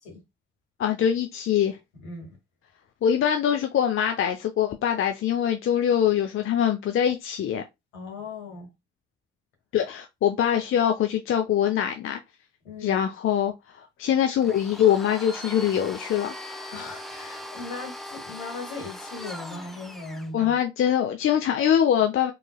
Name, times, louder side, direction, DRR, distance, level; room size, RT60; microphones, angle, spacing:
voice 1, 0.8-1.8 3.0-7.6 9.7-12.2 12.8-16.4 20.3-22.3, left 9 dB, 45° left, 0.7 m, -23 dB
voice 2, 2.0-2.4 7.9-8.7 12.6-13.0 16.7-20.5, left 3 dB, 70° left, 2.0 m, -38 dB
Domestic sounds home sounds, 14.4-20.3, left 1 dB, ahead, 0.8 m, -40 dB
4.4 x 3.2 x 2.2 m
figure-of-eight pair, 45°, 30 cm